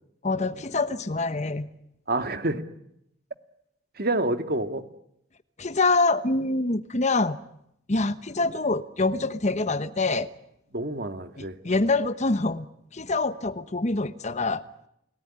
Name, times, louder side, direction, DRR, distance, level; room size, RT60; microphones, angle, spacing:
voice 1, 0.2-1.7 5.6-7.4 7.9-10.3 11.4-14.6, left 3 dB, 40° left, 13 dB, 1.1 m, -25 dB
voice 2, 2.1-2.6 4.0-4.8 10.7-11.6, right 2 dB, 55° right, 8 dB, 1.8 m, -28 dB
29.5 x 18.0 x 9.8 m, 0.80 s
head